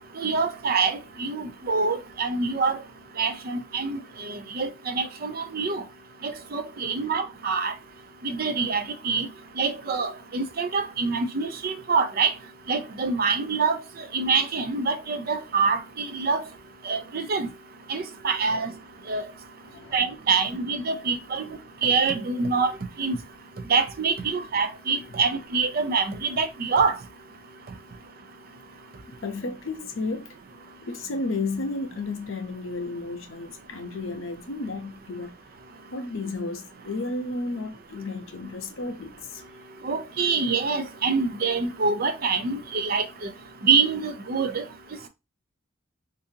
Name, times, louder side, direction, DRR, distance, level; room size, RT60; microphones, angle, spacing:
voice 1, 0.2-2.8 3.2-5.8 6.2-7.7 8.2-9.3 9.6-12.3 12.7-13.8 14.1-16.4 16.8-17.5 17.9-18.7 19.1-19.2 19.9-21.5 21.8-22.7 23.0-23.2 23.7-27.0 39.8-43.3 43.6-44.6, right 4 dB, 50° right, 0.5 m, -25 dB
voice 2, 19.6-20.0 29.1-30.3 30.8-35.3 35.9-39.4, left 3 dB, 75° left, 0.7 m, -33 dB
3.7 x 2.6 x 2.7 m
head